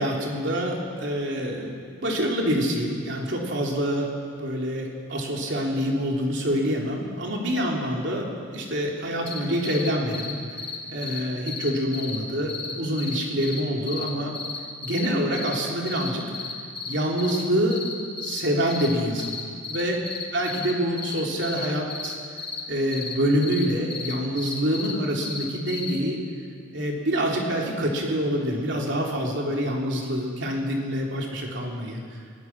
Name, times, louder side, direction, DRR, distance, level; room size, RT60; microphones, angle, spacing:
voice 1, 0.0-10.3 10.9-14.3 14.8-16.2 16.9-17.8 18.2-19.4 19.7-20.0 20.3-22.1 22.7-26.2 26.7-32.0, equal, 55° right, -1 dB, 3.6 m, -26 dB
sound 1, 9.2-9.4 9.6-9.9 10.1-10.3 10.6-10.8 11.0-11.2 11.5-12.2 12.5-12.7 13.0-13.6 13.9-15.1 15.3-15.5 15.9-16.1 16.3-17.4 17.7-18.4 18.7-18.9 19.2-20.7 21.0-22.6 22.9-23.1 23.4-23.6 23.9-24.9 25.2-25.9, left 5 dB, 25° left, 2.5 m, -33 dB
24.5 x 19.0 x 6.1 m, 2.1 s
head